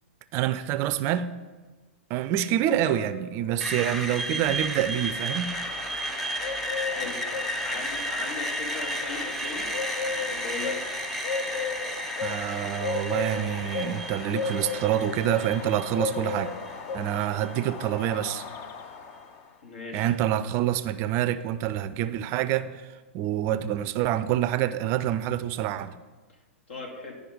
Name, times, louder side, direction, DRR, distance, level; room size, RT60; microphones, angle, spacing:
voice 1, 0.3-1.3 2.1-5.6 12.2-16.5 16.9-18.4 19.9-22.8 23.1-25.9, right 11 dB, 40° right, 0.4 m, -27 dB
Screech, 3.6-17.6, equal, 5° left, 0.8 m, -33 dB
Bird, 4.8-19.5, left 5 dB, 40° left, 0.7 m, -36 dB
voice 2, 6.8-7.2 7.6-9.7 10.1-10.8 19.6-20.1 26.7-27.1, left 3 dB, 70° left, 2.2 m, -38 dB
10.5 x 5.2 x 5.1 m
hypercardioid pair, 110°, 7 cm